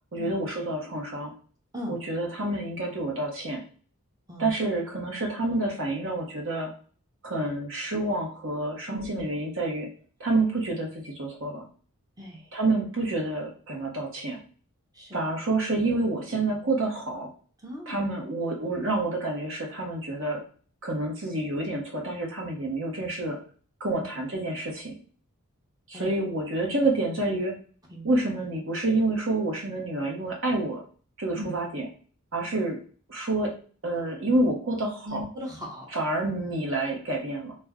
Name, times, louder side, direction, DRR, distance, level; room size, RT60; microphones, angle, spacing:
voice 1, 0.1-1.3 1.9-3.6 4.4-6.7 7.2-9.9 10.2-11.6 12.5-14.4 15.1-17.3 17.9-20.4 20.8-23.4 23.8-24.9 25.9-27.5 28.0-30.8 31.2-31.9 32.3-32.8 33.1-33.5 33.8-35.2 35.9-37.5, right 2 dB, 60° right, 0 dB, 0.9 m, -28 dB
voice 2, 8.9-9.2 12.2-12.5 14.9-15.2 17.6-18.0 25.9-26.1 27.9-28.1 31.3-31.5 35.0-35.9, equal, 15° right, -2 dB, 0.6 m, -37 dB
2.5 x 2.2 x 3.5 m, 0.42 s
head